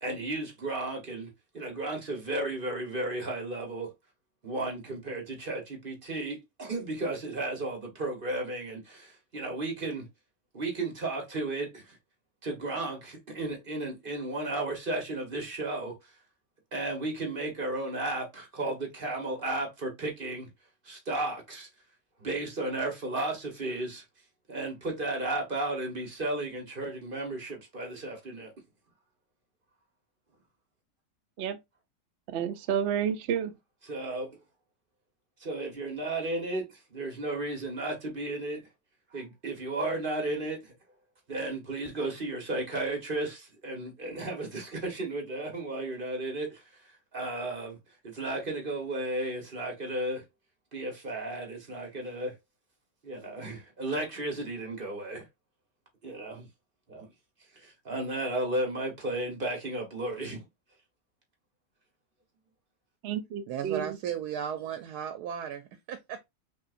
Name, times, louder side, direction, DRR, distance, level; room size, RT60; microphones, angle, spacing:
voice 1, 0.0-3.9 4.4-10.1 10.5-12.0 12.4-16.0 16.7-20.5 20.8-21.7 22.2-24.0 24.5-28.5 33.9-34.4 35.4-38.7 39.1-40.7 41.3-46.6 47.1-47.8 48.0-50.2 50.7-52.3 53.0-55.3 56.0-56.5 56.9-57.1 57.5-60.4, right 2 dB, 35° right, 1.3 m, -34 dB
voice 2, 32.3-33.5 63.0-64.0, right 8 dB, 65° right, 0.7 m, -30 dB
voice 3, 63.5-66.3, right 8 dB, 85° right, 1.2 m, -35 dB
5.5 x 2.8 x 2.5 m
omnidirectional pair, 1.6 m